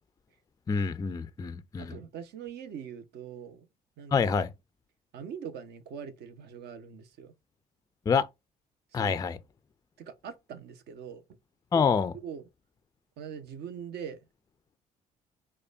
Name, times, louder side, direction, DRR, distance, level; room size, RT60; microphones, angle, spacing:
voice 1, 0.7-2.0 4.1-4.5 8.1-8.3 8.9-9.4 11.7-12.1, left 6 dB, 20° left, 0.4 m, -26 dB
voice 2, 1.8-3.7 4.0-4.3 5.1-7.3 9.0-9.2 10.0-11.2 12.1-12.4 13.2-14.2, right 7 dB, 60° right, 0.7 m, -42 dB
4.8 x 2.2 x 2.4 m
hypercardioid pair, 50°, 20 cm